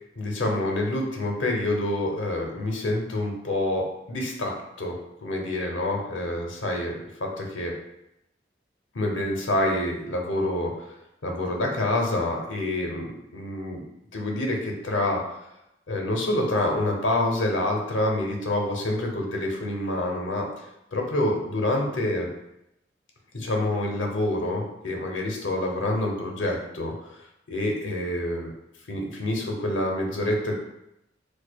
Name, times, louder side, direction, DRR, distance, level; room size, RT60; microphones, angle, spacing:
voice 1, 0.2-7.7 8.9-10.9 11.2-13.8 14.1-15.4 15.9-20.6 20.9-22.3 23.3-27.2 27.5-28.5 28.9-30.5, left 1 dB, 90° left, 0 dB, 0.6 m, -27 dB
4.5 x 2.3 x 2.2 m, 0.85 s
head